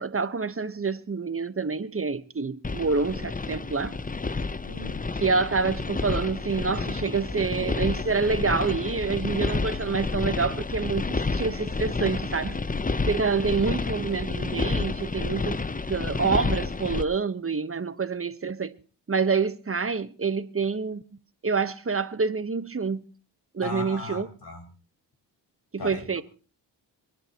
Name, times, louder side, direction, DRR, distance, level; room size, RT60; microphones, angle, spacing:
voice 1, 0.0-4.0 5.2-12.6 13.1-15.6 15.9-18.7 19.1-21.0 21.4-23.0 23.5-24.3 25.7-26.2, right 4 dB, 30° right, 1.2 m, -27 dB
sound 1, 2.6-17.0, left 3 dB, 15° left, 0.9 m, -30 dB
voice 2, 4.6-5.0 23.6-24.7 25.8-26.2, left 3 dB, 50° left, 6.5 m, -37 dB
27.5 x 11.5 x 3.0 m
supercardioid pair, 50°, 47 cm